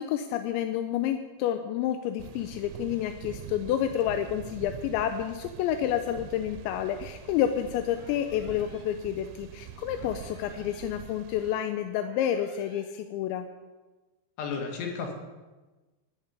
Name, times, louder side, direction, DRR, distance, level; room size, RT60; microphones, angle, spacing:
voice 1, 0.0-13.5, left 10 dB, 85° left, 7 dB, 2.9 m, -29 dB
sound 1, 2.2-11.6, right 11 dB, 85° right, 2.9 m, -44 dB
sound 2, 7.9-8.8 9.9-10.8 11.9-12.8, left 1 dB, 20° left, 2.0 m, -55 dB
voice 2, 14.4-15.1, left 5 dB, 65° left, 2 dB, 3.9 m, -33 dB
13.0 x 7.5 x 8.8 m, 1.2 s
omnidirectional pair, 5.4 m